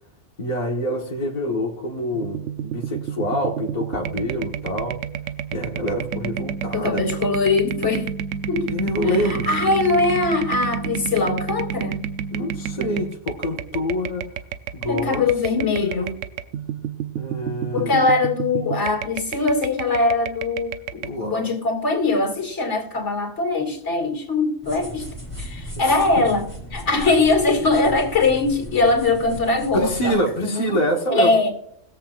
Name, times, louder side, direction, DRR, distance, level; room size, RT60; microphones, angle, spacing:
voice 1, 0.4-5.0 5.5-7.0 8.7-9.5 12.3-14.2 14.7-15.2 15.8-16.1 17.1-17.9 18.6-18.8 21.0-21.5 25.8-26.2 29.7-31.3, equal, 35° left, 1.5 m, -26 dB
sound 1, 2.1-21.1, right 8 dB, 85° right, 1.0 m, -30 dB
voice 2, 6.7-8.1 8.5-8.7 9.1-12.1 14.9-16.1 17.7-25.1 25.4-26.5 26.7-30.2 30.4-30.8 31.1-31.5, left 3 dB, 70° left, 2.6 m, -21 dB
sound 2, 24.6-30.1, equal, 10° right, 3.6 m, -36 dB
20.5 x 7.5 x 2.5 m
omnidirectional pair, 1.2 m